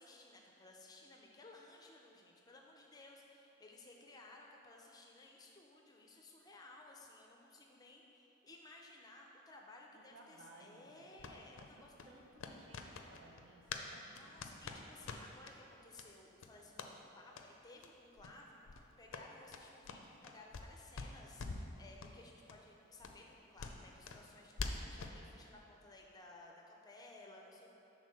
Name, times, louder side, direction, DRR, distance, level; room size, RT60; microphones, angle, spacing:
voice 1, 0.0-11.9 14.2-27.7, left 2 dB, 20° left, 0 dB, 0.5 m, -58 dB
voice 2, 9.9-11.3 11.7-14.4, right 2 dB, 65° right, 0 dB, 0.8 m, -61 dB
sound 1, 11.2-13.9 14.1-15.6 15.9-16.1 16.4-16.9 17.3-17.5 17.8-17.9 18.2-18.4 18.6-20.7 20.9-21.7 22.0-22.1 22.5-22.6 23.0-25.2, left 4 dB, 75° left, 0.5 m, -46 dB
6.3 x 3.7 x 6.2 m, 3.0 s
head